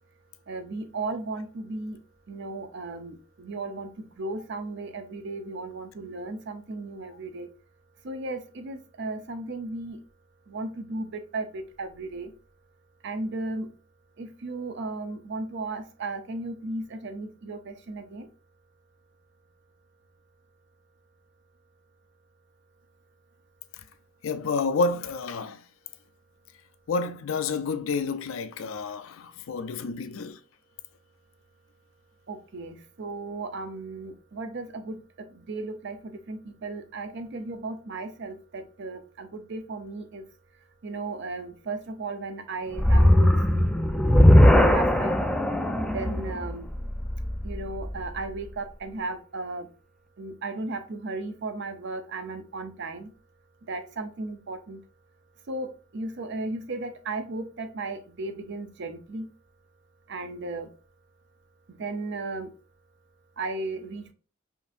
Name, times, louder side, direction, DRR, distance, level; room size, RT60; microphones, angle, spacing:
voice 1, 0.5-2.0 2.3-7.5 8.0-10.0 10.5-12.3 13.0-13.7 14.2-18.3 32.3-40.2 40.8-43.7 44.6-45.2 45.9-46.7 47.4-49.7 50.2-53.1 53.7-54.8 55.5-59.3 60.1-60.7 61.7-62.5 63.4-64.1, right 3 dB, 60° right, 0.6 m, -35 dB
voice 2, 24.2-25.6 26.9-30.4, left 4 dB, 85° left, 0.4 m, -29 dB
sound 1, 42.7-48.0, left 1 dB, 5° left, 0.3 m, -19 dB
5.3 x 2.6 x 2.5 m
head